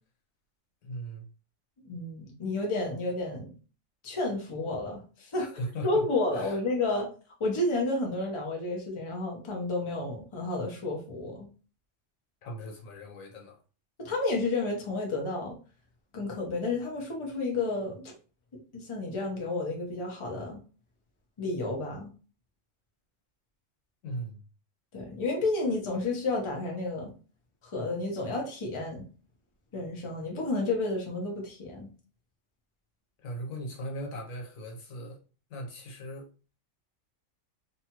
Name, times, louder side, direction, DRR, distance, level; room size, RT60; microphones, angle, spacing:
voice 1, 0.8-1.3 5.4-6.0 6.3-6.6 12.4-13.6 24.0-24.4 33.2-35.2 35.5-36.3, equal, 85° left, 1.2 m, -38 dB
voice 2, 1.8-3.5 4.0-5.5 5.8-7.1 7.4-11.5 14.0-15.6 16.1-18.1 18.7-20.6 21.4-22.1 24.9-27.1 27.7-29.1 29.7-31.9, left 2 dB, 30° left, 0.7 m, -31 dB
2.8 x 2.3 x 2.8 m
omnidirectional pair, 1.4 m